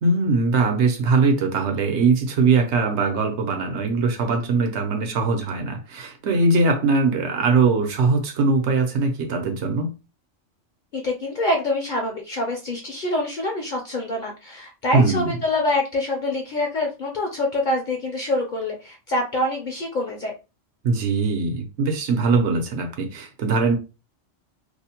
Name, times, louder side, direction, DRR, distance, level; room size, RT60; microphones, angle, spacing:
voice 1, 0.0-9.9 14.9-15.4 20.8-23.8, right 4 dB, 70° right, 0.9 m, -21 dB
voice 2, 10.9-20.3, left 1 dB, 55° left, 0.5 m, -25 dB
2.6 x 2.0 x 2.8 m
omnidirectional pair, 1.3 m